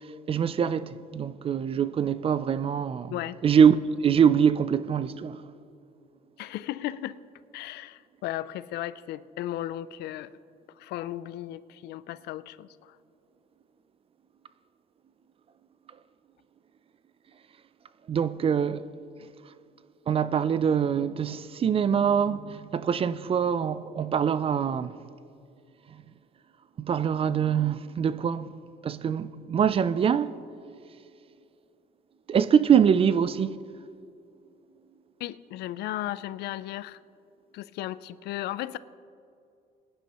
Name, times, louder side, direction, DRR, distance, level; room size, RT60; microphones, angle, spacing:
voice 1, 0.3-3.1 3.4-3.8 4.0-5.4 18.1-18.8 20.1-24.9 26.8-28.5 28.8-30.3 32.3-33.6, right 7 dB, 35° right, 0.4 m, -24 dB
voice 2, 6.4-7.2 7.5-10.3 10.8-13.0 35.2-37.0 37.5-38.8, left 14 dB, 80° left, 0.5 m, -35 dB
23.5 x 10.0 x 3.0 m
cardioid pair, 110°, 17 cm